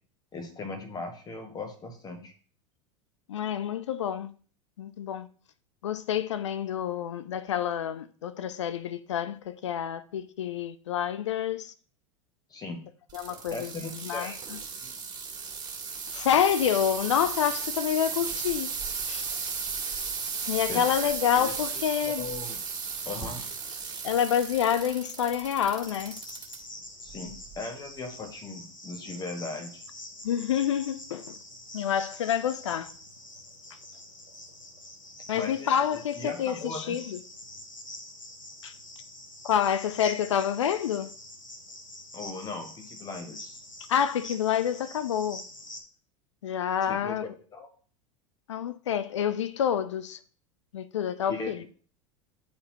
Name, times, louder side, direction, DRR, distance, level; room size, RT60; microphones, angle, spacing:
voice 1, 0.3-2.3 12.5-12.8 13.5-14.4 14.8-14.9 20.7-20.9 21.4-21.5 22.0-22.6 23.0-23.4 27.0-29.8 35.3-37.0 42.1-43.6 46.9-47.7 51.2-51.7, left 3 dB, 25° left, 1.4 m, -38 dB
voice 2, 3.3-4.3 4.8-5.3 5.8-11.7 13.1-14.6 16.1-18.7 19.1-19.3 20.4-22.3 24.0-26.2 30.2-31.4 31.7-32.9 35.3-37.2 38.6-38.7 39.4-41.1 43.9-45.4 46.4-47.3 48.5-50.2 50.7-51.6, left 9 dB, 65° left, 0.4 m, -28 dB
sound 1, 13.1-26.6 27.1-27.5 28.2-28.3, right 5 dB, 25° right, 1.8 m, -35 dB
Cricket, 25.8-45.8, left 1 dB, 90° left, 0.8 m, -46 dB
10.0 x 4.2 x 2.9 m
figure-of-eight pair, 80°, 16 cm